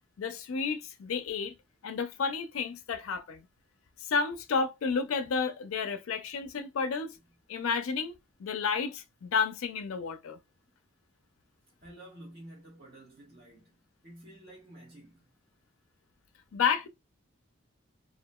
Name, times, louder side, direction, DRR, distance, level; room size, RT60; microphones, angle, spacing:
voice 1, 0.2-1.5 1.8-3.4 4.0-7.2 7.5-8.1 8.4-10.4 16.5-16.9, left 5 dB, 85° left, 0.4 m, -31 dB
voice 2, 11.8-13.8 14.0-15.3, right 1 dB, 50° right, 1.2 m, -50 dB
2.7 x 2.4 x 2.2 m
head